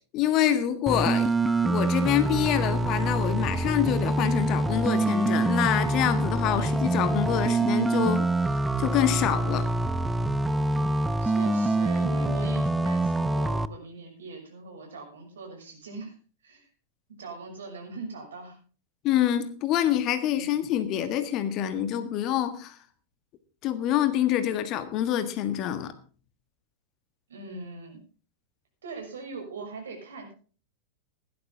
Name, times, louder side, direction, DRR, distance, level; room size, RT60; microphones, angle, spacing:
voice 1, 0.1-1.3 1.6-8.3 8.8-9.7 19.0-22.8 23.6-25.9, left 11 dB, 35° left, 1.6 m, -26 dB
sound 1, 0.9-13.7, right 2 dB, 5° right, 0.6 m, -25 dB
voice 2, 11.2-16.1 16.4-16.7 17.2-18.6 20.3-20.5 27.3-28.0 28.8-30.3, right 3 dB, 65° right, 6.4 m, -41 dB
17.0 x 12.0 x 3.7 m
figure-of-eight pair, 90°, 0 cm